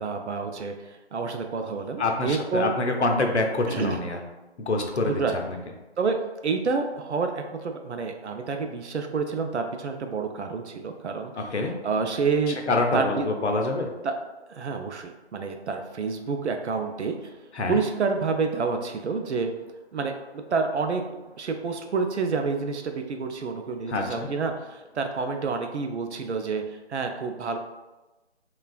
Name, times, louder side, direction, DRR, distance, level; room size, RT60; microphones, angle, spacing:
voice 1, 0.0-2.7 3.7-4.0 5.0-5.4 6.0-6.2 6.4-11.5 11.8-13.3 14.0-14.1 14.5-17.2 17.7-19.5 19.9-21.0 21.4-26.6 26.9-27.6, right 4 dB, 85° right, 5 dB, 0.5 m, -28 dB
voice 2, 2.0-4.2 4.6-5.6 11.4-11.7 12.7-13.9 17.5-17.8 23.9-24.3, left 2 dB, 85° left, 2 dB, 0.6 m, -26 dB
3.3 x 2.3 x 2.2 m, 1.1 s
figure-of-eight pair, 165°, 33 cm